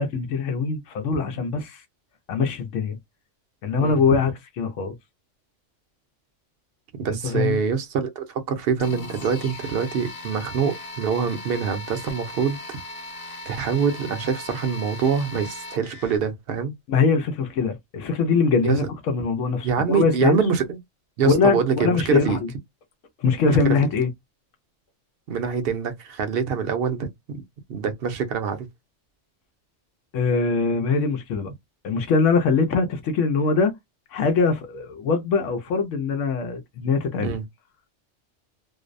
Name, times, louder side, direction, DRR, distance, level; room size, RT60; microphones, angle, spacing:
voice 1, 0.0-1.8 2.3-3.0 3.6-4.3 4.6-4.9 7.1-7.6 16.9-20.4 21.2-22.5 23.2-24.1 30.1-31.5 31.8-33.7 34.1-37.3, left 4 dB, 80° left, 0.9 m, -22 dB
voice 2, 3.7-4.2 7.0-12.8 13.5-16.7 18.6-18.9 19.6-20.8 21.2-22.4 23.6-23.7 25.3-27.4 27.7-28.7 37.2-37.4, right 6 dB, 60° right, 0.7 m, -25 dB
sound 1, 8.8-16.2, left 2 dB, 55° left, 0.4 m, -38 dB
2.5 x 2.0 x 2.4 m
omnidirectional pair, 1.3 m